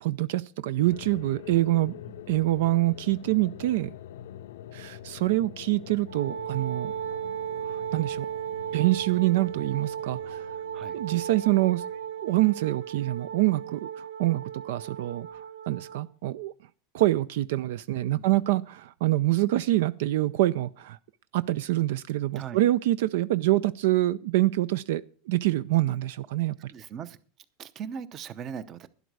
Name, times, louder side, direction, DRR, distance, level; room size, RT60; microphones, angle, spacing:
voice 1, 0.0-1.9 2.3-3.9 4.7-6.9 7.6-8.3 8.7-10.5 10.9-11.8 12.2-16.5 16.9-21.0 21.3-26.7, right 16 dB, 65° right, 0.5 m, -26 dB
sound 1, 0.8-12.8, left 11 dB, 90° left, 0.6 m, -45 dB
Wind instrument woodwind instrument, 6.1-16.1, right 9 dB, 85° right, 1.2 m, -36 dB
voice 2, 22.3-22.6 26.7-27.2 27.6-28.9, right 7 dB, 25° right, 0.8 m, -39 dB
12.0 x 11.5 x 4.8 m
supercardioid pair, 175°, 0 cm